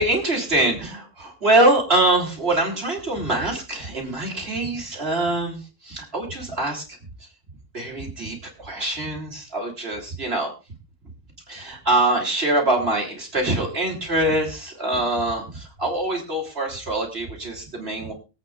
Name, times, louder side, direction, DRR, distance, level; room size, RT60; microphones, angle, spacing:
voice 1, 0.0-6.8 7.7-10.5 11.5-18.1, right 1 dB, 50° right, 1 dB, 3.5 m, -24 dB
23.5 x 8.7 x 2.5 m, 0.29 s
omnidirectional pair, 1.4 m